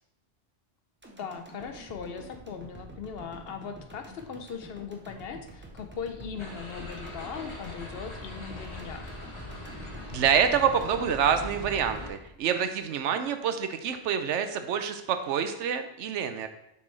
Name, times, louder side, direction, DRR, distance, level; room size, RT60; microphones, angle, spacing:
sound 1, 1.0-13.2 13.6-13.7, right 1 dB, 15° right, 0.6 m, -48 dB
voice 1, 1.2-9.1, left 6 dB, 65° left, 6 dB, 0.8 m, -39 dB
sound 2, 6.4-12.1, left 1 dB, 25° left, 1.2 m, -41 dB
voice 2, 10.1-16.5, right 7 dB, 80° right, 8 dB, 0.9 m, -27 dB
7.0 x 4.5 x 3.2 m, 0.80 s
omnidirectional pair, 1.2 m